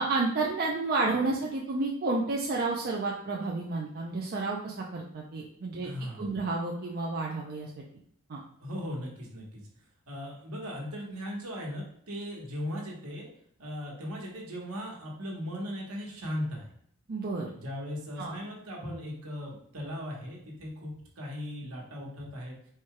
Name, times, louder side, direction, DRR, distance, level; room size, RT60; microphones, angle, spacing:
voice 1, 0.0-5.9 6.2-7.8 8.3-8.4 17.1-17.5 18.2-18.4, right 3 dB, 45° right, -2 dB, 0.5 m, -31 dB
voice 2, 5.8-6.4 8.6-9.6 10.1-13.3 13.6-16.7 17.5-22.6, equal, 70° right, -1 dB, 1.3 m, -38 dB
4.4 x 2.3 x 4.7 m, 0.66 s
head